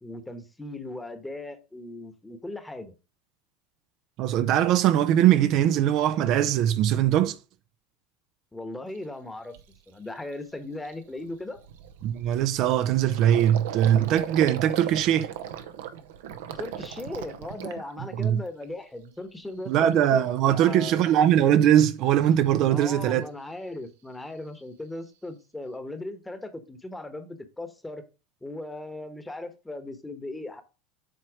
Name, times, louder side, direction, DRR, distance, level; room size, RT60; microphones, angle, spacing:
voice 1, 0.0-2.9 8.5-9.5 9.9-11.6 16.5-21.1 22.7-28.0 28.4-30.6, left 2 dB, 10° left, 1.1 m, -38 dB
voice 2, 4.2-7.4 12.0-15.3 18.2-18.4 19.7-23.3, right 11 dB, 55° right, 0.5 m, -21 dB
Gurgling, 9.0-9.1 9.5-9.8 10.2-10.3 10.6-18.6 19.0-19.6, right 9 dB, 85° right, 0.8 m, -38 dB
7.9 x 3.0 x 4.8 m
supercardioid pair, 110°, 0 cm